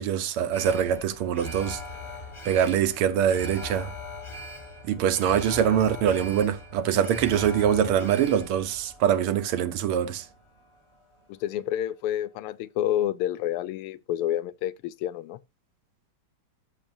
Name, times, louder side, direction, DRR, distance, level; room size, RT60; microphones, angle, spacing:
voice 1, 0.0-1.8 2.4-3.9 4.9-10.2, right 9 dB, 85° right, 1.7 m, -24 dB
Alarm, 0.5-10.8 11.1-11.2, left 1 dB, 20° left, 0.9 m, -41 dB
voice 2, 11.3-15.4, left 12 dB, 85° left, 1.5 m, -29 dB
12.0 x 6.5 x 2.6 m
omnidirectional pair, 2.4 m